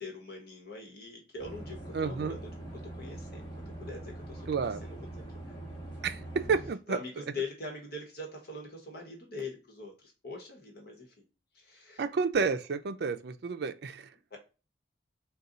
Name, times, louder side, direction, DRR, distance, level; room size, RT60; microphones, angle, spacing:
voice 1, 0.0-5.2 6.0-6.2 6.9-11.2 11.5-12.0 14.3-14.4, left 3 dB, 55° left, 1.1 m, -43 dB
sound 1, 1.4-6.7, right 1 dB, 30° left, 1.5 m, -43 dB
voice 2, 1.9-2.4 4.5-4.8 6.0-7.0 12.0-14.1, right 5 dB, 60° right, 0.4 m, -30 dB
4.0 x 2.3 x 3.7 m
head